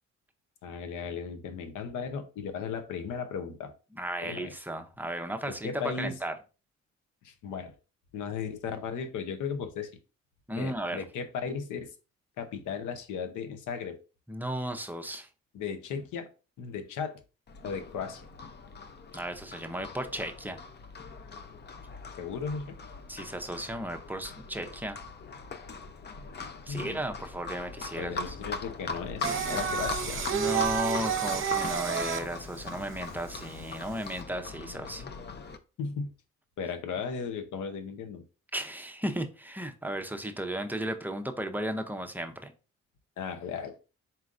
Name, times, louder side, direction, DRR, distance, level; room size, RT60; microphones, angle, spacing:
voice 1, 0.6-3.7 4.2-4.5 5.5-6.2 7.2-7.7 8.1-9.9 10.6-11.9 12.4-14.0 15.5-16.3 16.6-17.2 17.6-18.3 22.2-22.8 26.7-27.0 28.0-30.2 35.8-36.1 36.6-38.2 43.2-43.8, left 6 dB, 80° left, 0.8 m, -36 dB
voice 2, 3.9-5.7 6.0-6.3 10.5-11.0 14.3-15.3 19.1-20.6 23.1-25.0 26.7-28.3 30.3-35.0 38.5-42.5, right 1 dB, 5° right, 0.6 m, -35 dB
Livestock farm animals working animals, 17.5-35.6, left 4 dB, 35° left, 0.5 m, -41 dB
Singing, 29.2-34.2, right 7 dB, 45° right, 0.8 m, -31 dB
4.3 x 3.7 x 2.5 m
cardioid pair, 90°, 30 cm